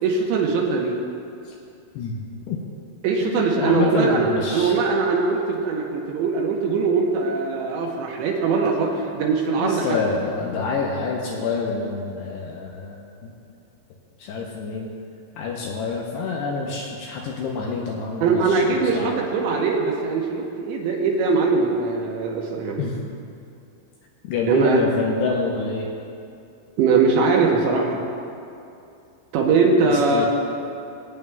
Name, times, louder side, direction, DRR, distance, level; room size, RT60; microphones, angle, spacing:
voice 1, 0.0-1.0 3.0-10.0 18.2-22.9 24.5-24.8 26.8-28.0 29.3-30.3, right 4 dB, 75° right, -1 dB, 2.9 m, -21 dB
voice 2, 3.2-4.8 9.6-13.3 14.2-14.9 15.4-19.2 22.8-23.0 24.2-25.9 29.8-30.3, left 4 dB, 80° left, -2 dB, 2.5 m, -27 dB
21.5 x 9.0 x 2.3 m, 2.6 s
omnidirectional pair, 5.5 m